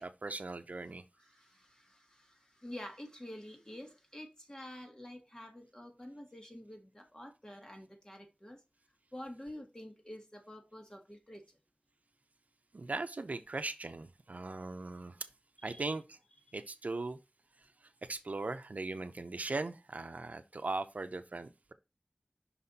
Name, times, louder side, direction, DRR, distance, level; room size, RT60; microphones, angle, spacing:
voice 1, 0.0-1.0 12.7-15.1 15.6-16.2 16.5-17.2 18.1-21.7, right 3 dB, 70° right, 0.6 m, -39 dB
voice 2, 1.1-8.6 9.1-11.6 15.6-15.9 16.5-16.6, left 1 dB, 25° left, 1.8 m, -49 dB
5.9 x 4.2 x 4.0 m
wide cardioid pair, 60°, 3 cm